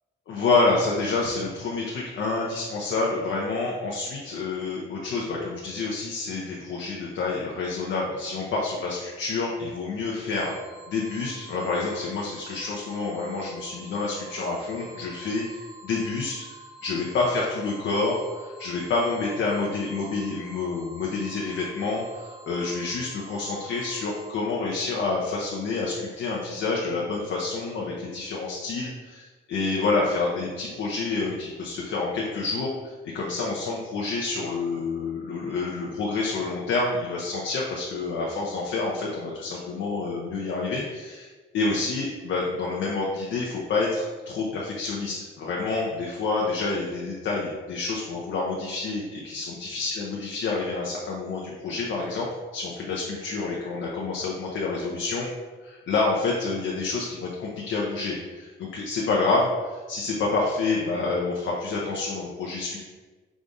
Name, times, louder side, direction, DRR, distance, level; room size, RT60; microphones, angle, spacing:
voice 1, 0.3-10.5 10.9-16.3 16.8-41.3 41.5-52.3 52.5-55.3 55.6-62.8, left 3 dB, 70° left, -3 dB, 0.8 m, -28 dB
sound 1, 10.3-24.3, right 2 dB, 75° right, 0.6 m, -47 dB
5.0 x 3.6 x 2.6 m, 1.3 s
cardioid pair, 90°, 20 cm